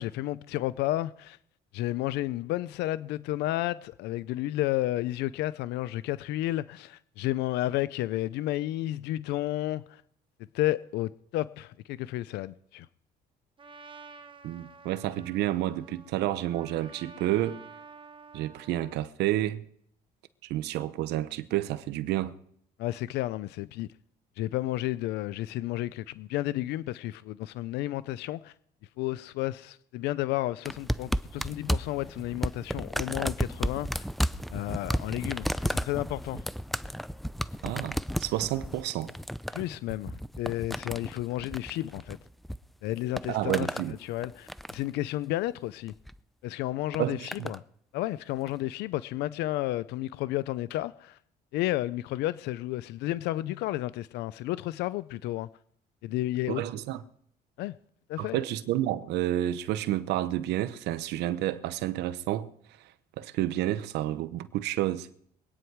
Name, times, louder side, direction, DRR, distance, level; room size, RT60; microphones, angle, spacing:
voice 1, 0.0-1.4 1.7-10.0 10.5-12.9 22.8-23.9 24.4-28.5 29.0-34.1 34.5-36.4 39.5-42.2 42.8-43.7 44.0-45.9 46.4-47.6 47.9-51.2 51.5-55.5 56.0-56.6 57.6-57.7 58.1-58.4, left 15 dB, 85° left, 0.5 m, -32 dB
Trumpet, 13.6-19.0, right 4 dB, 30° right, 1.3 m, -50 dB
voice 2, 14.4-17.6 18.3-19.6 20.4-22.3 37.6-39.1 43.3-44.0 47.0-47.5 56.5-57.0 58.2-62.5 62.8-65.1, right 14 dB, 85° right, 0.8 m, -30 dB
sound 1, 30.6-42.6 42.9-43.9 44.2-44.9 45.9-46.2 46.9-47.6 48.5-48.6, equal, ahead, 0.4 m, -33 dB
23.5 x 9.6 x 4.7 m
cardioid pair, 110°, 17 cm